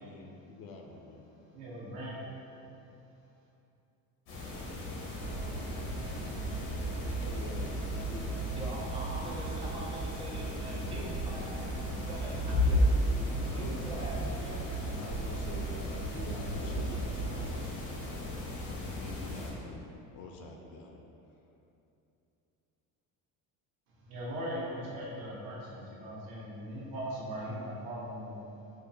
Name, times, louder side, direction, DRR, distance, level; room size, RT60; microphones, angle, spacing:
voice 1, 0.0-1.4 7.1-8.4 10.7-11.2 13.2-14.6 15.0-21.0 21.3-21.4, left 3 dB, 50° left, 2 dB, 0.5 m, -47 dB
voice 2, 1.5-2.2 24.1-28.3, equal, 80° right, -6 dB, 1.1 m, -39 dB
sound 1, 4.3-19.5, left 1 dB, 85° left, 1.1 m, -35 dB
sound 2, 5.2-17.5, right 4 dB, 55° right, 1.1 m, -38 dB
voice 3, 8.5-13.2 13.4-14.6, right 2 dB, 15° right, -3 dB, 0.6 m, -44 dB
5.0 x 2.1 x 2.7 m, 2.8 s
supercardioid pair, 85°, 44 cm